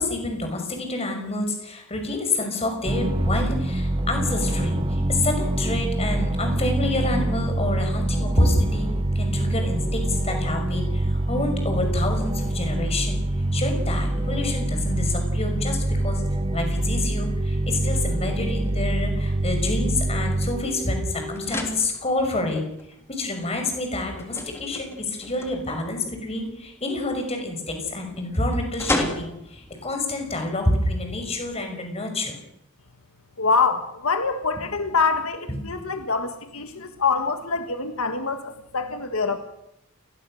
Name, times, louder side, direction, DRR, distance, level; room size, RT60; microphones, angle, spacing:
voice 1, 0.0-8.9 9.1-16.2 16.5-22.6 23.1-32.4 34.6-34.7 35.5-35.6, left 2 dB, 30° left, 5 dB, 5.8 m, -28 dB
sound 1, 2.9-21.5, right 1 dB, 25° right, 0.9 m, -25 dB
sound 2, 20.8-31.6, left 1 dB, 10° left, 3.2 m, -37 dB
voice 2, 33.4-39.4, left 4 dB, 75° left, 7 dB, 1.7 m, -25 dB
28.5 x 20.5 x 6.5 m, 0.82 s
head